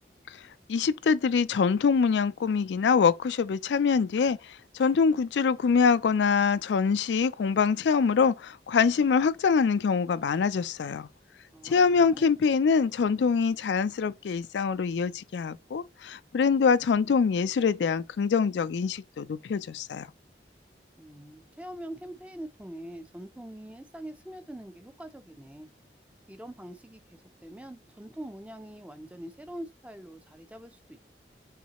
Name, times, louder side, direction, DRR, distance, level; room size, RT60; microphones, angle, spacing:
voice 1, 0.7-11.1 11.6-20.1, left 5 dB, 85° left, 0.4 m, -24 dB
voice 2, 11.5-12.3 21.0-25.7 26.3-31.0, right 1 dB, 10° right, 0.5 m, -43 dB
5.5 x 3.2 x 2.9 m
head